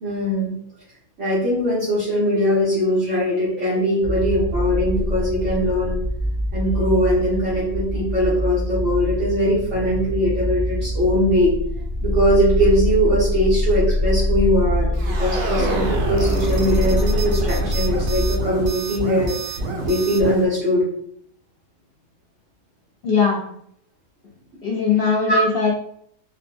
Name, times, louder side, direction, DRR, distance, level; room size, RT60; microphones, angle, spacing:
voice 1, 0.0-0.5 1.2-6.0 6.5-11.5 12.0-19.3 19.8-20.8 25.3-25.4, equal, 55° right, -10 dB, 1.4 m, -21 dB
sound 1, 4.0-18.4, left 1 dB, 30° left, 0.8 m, -24 dB
sound 2, 14.9-20.5, right 2 dB, 80° right, 1.2 m, -27 dB
voice 2, 23.0-23.4 24.6-25.7, left 5 dB, 70° left, -4 dB, 0.5 m, -19 dB
4.2 x 2.2 x 2.5 m, 0.68 s
omnidirectional pair, 1.6 m